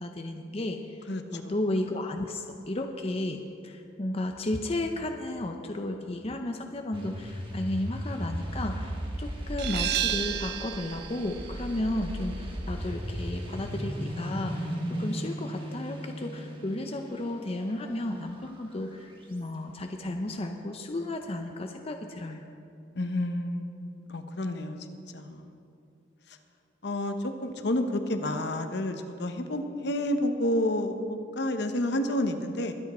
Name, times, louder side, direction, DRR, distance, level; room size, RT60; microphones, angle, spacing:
voice 1, 0.0-14.7 15.0-22.5, left 1 dB, 30° left, 4 dB, 0.6 m, -33 dB
voice 2, 1.1-1.5 23.0-24.8 25.1-25.5 26.8-32.7, left 1 dB, 65° left, 7 dB, 0.9 m, -30 dB
sound 1, 6.9-19.3, equal, 30° right, 1.6 m, -36 dB
sound 2, 9.6-15.0, right 11 dB, 60° right, 0.4 m, -35 dB
22.5 x 8.5 x 4.3 m, 2.6 s
head